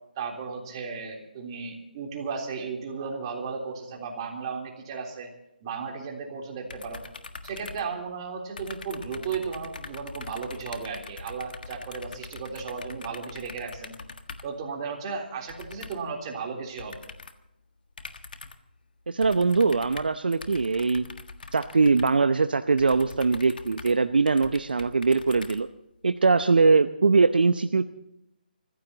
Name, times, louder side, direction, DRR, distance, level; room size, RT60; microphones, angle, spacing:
voice 1, 0.2-5.3 5.6-7.0 7.4-14.0 14.4-17.0, right 5 dB, 30° right, 1 dB, 3.5 m, -35 dB
sound 1, 6.7-8.3 8.6-14.6 15.5-16.2 16.8-17.5 18.0-18.7 19.2-26.0, left 3 dB, 65° left, 1.5 m, -43 dB
voice 2, 19.1-21.1 21.5-25.7 26.0-27.8, right 4 dB, 65° right, 10 dB, 0.8 m, -22 dB
29.5 x 15.0 x 2.9 m, 0.84 s
figure-of-eight pair, 145°, 5 cm